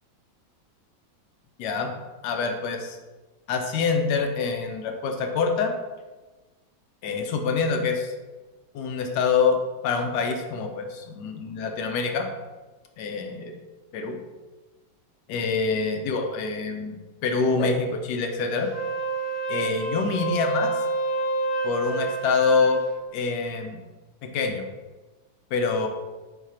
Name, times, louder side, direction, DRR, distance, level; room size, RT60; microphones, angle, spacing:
voice 1, 1.6-2.0 2.2-3.0 3.5-5.7 7.0-8.1 8.7-12.3 13.0-13.5 13.9-14.2 15.3-18.7 19.5-20.8 21.6-22.8 23.1-23.8 24.2-24.6 25.5-25.9, left 4 dB, 75° left, 4 dB, 1.1 m, -26 dB
Wind instrument woodwind instrument, 18.6-22.9, right 3 dB, 45° left, 1.0 m, -28 dB
3.6 x 3.2 x 4.2 m, 1.2 s
omnidirectional pair, 2.0 m